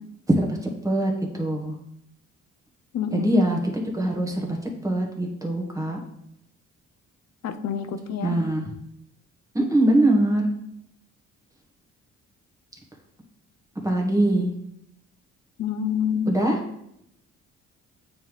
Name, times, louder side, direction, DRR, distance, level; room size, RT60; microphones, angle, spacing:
voice 1, 1.4-1.7 3.1-4.6 4.8-6.0 8.2-8.6 9.5-10.5 13.8-14.5 16.3-16.6, right 1 dB, 10° right, 0 dB, 1.4 m, -22 dB
voice 2, 2.9-3.3 7.4-8.4 15.6-16.4, left 7 dB, 60° left, 10 dB, 0.6 m, -27 dB
8.8 x 3.5 x 3.1 m, 0.78 s
cardioid pair, 90°, 30 cm